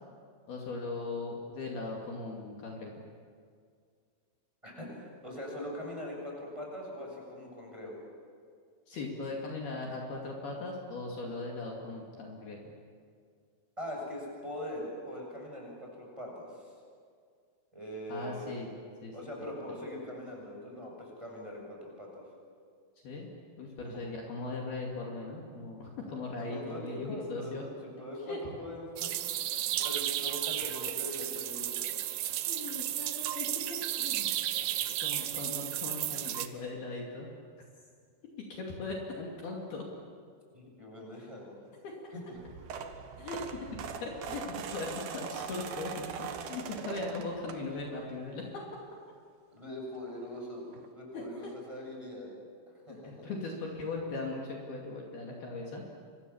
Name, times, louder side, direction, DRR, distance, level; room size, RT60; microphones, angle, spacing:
voice 1, 0.5-2.9 8.9-12.7 18.1-18.8 19.0-19.7 23.0-23.3 23.6-27.6 28.3-28.6 30.5-30.7 32.4-34.6 35.0-37.3 38.6-39.8 41.8-42.0 43.2-48.6 51.1-51.5 52.9-55.8, left 3 dB, 55° left, -2 dB, 4.3 m, -39 dB
voice 2, 4.6-8.0 13.8-16.7 17.7-18.7 19.1-22.2 23.8-24.0 26.5-29.1 29.5-31.9 34.6-34.9 40.5-41.5 42.3-42.4 49.5-50.7 50.9-52.3 52.9-53.3, left 1 dB, 5° right, -2 dB, 7.1 m, -42 dB
sound 1, 29.0-36.5, right 13 dB, 85° right, 2.0 m, -33 dB
sound 2, 42.4-48.0 48.5-48.7 50.0-50.1 50.3-50.4 50.7-50.9, right 6 dB, 65° right, 2.8 m, -41 dB
29.5 x 25.0 x 7.3 m, 2.1 s
omnidirectional pair, 5.5 m